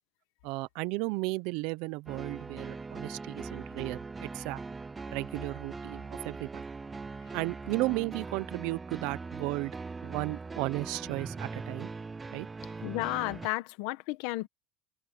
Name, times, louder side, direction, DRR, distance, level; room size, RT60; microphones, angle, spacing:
voice 1, 0.4-4.6 5.1-6.6 7.3-9.7 10.0-11.9 12.3-12.5, right 23 dB, 65° right, 0.7 m, -34 dB
sound 1, 2.1-13.5, right 4 dB, 15° right, 0.5 m, -41 dB
voice 2, 12.8-14.5, left 21 dB, 70° left, 1.3 m, -33 dB
cardioid pair, 145°, 0 cm